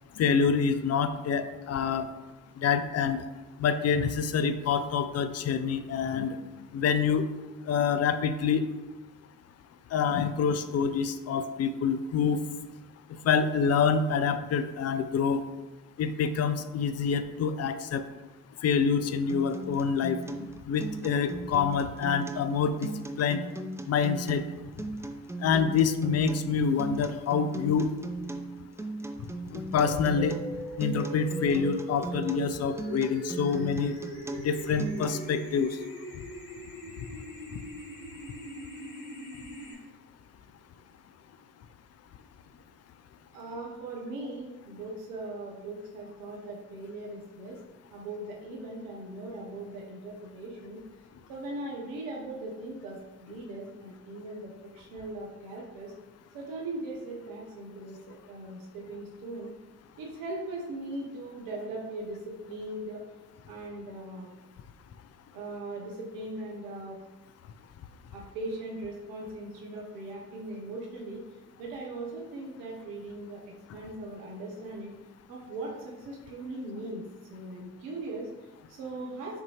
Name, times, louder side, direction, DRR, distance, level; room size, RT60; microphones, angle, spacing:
voice 1, 0.2-2.1 2.6-3.2 3.6-6.4 6.7-7.3 7.7-8.7 9.9-12.4 13.2-15.4 16.0-18.0 18.6-22.9 23.2-23.4 23.9-24.4 25.4-27.9 29.5-30.4 30.8-34.0 34.4-35.8, left 6 dB, 50° left, 10 dB, 0.5 m, -26 dB
Acoustic guitar, 19.3-35.3, right 2 dB, 10° right, 0.4 m, -38 dB
sound 1, 29.7-39.7, equal, 70° left, 1.4 m, -41 dB
voice 2, 43.3-47.6 47.9-50.8 51.3-55.9 56.3-59.5 60.0-63.0 63.4-64.3 65.3-67.0 68.1-73.4 73.7-74.9 75.3-77.0 77.3-79.4, right 2 dB, 85° right, -2 dB, 0.8 m, -39 dB
5.6 x 2.8 x 3.1 m, 1.1 s
hypercardioid pair, 50°, 33 cm